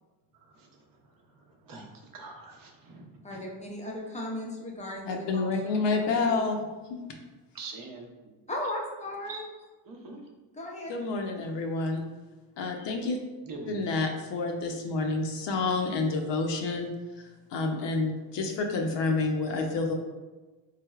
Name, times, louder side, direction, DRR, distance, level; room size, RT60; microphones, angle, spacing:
voice 1, 0.4-0.8 1.3-3.4 7.5-8.1 9.3-9.4 9.9-10.2 13.5-14.0, right 3 dB, 45° right, 1 dB, 0.7 m, -44 dB
voice 2, 3.2-6.5 8.5-9.4 10.6-10.9 11.4-11.5, left 1 dB, 15° left, -2 dB, 0.5 m, -37 dB
voice 3, 5.0-6.6 6.9-7.0 10.9-12.0 12.6-13.2 13.7-16.9 17.5-19.9, left 3 dB, 60° left, 3 dB, 0.6 m, -29 dB
4.1 x 3.3 x 2.3 m, 1.2 s
cardioid pair, 130°, 49 cm